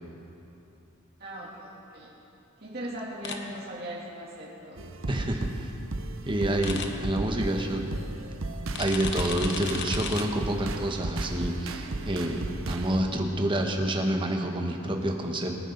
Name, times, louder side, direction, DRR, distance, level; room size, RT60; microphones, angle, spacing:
voice 1, 1.2-2.1 2.6-4.8, right 1 dB, 50° right, -7 dB, 2.9 m, -39 dB
sound 1, 3.2-3.4 6.6-6.9 8.7-10.2, left 6 dB, 55° left, 1.0 m, -34 dB
sound 2, 4.8-13.0, right 2 dB, 70° right, 0.8 m, -35 dB
voice 2, 5.1-5.7 6.3-7.9 8.8-15.6, right 1 dB, 25° right, 2 dB, 1.2 m, -28 dB
24.5 x 10.0 x 4.0 m, 3.0 s
head